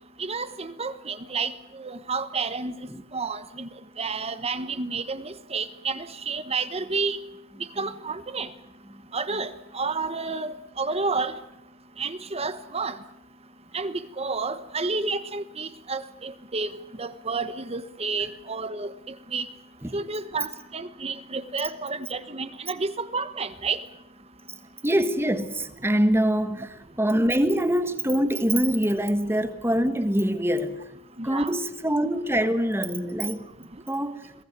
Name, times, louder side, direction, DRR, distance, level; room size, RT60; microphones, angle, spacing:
voice 1, 0.2-2.7 3.1-3.7 4.0-7.2 7.8-8.5 9.1-11.3 12.0-13.0 13.7-16.7 17.0-18.9 19.3-19.5 19.9-23.8 31.2-31.5, right 4 dB, 30° right, 1.1 m, -30 dB
voice 2, 24.8-30.8 31.2-33.5 33.9-34.2, equal, 10° right, 1.3 m, -24 dB
22.5 x 17.5 x 9.5 m
head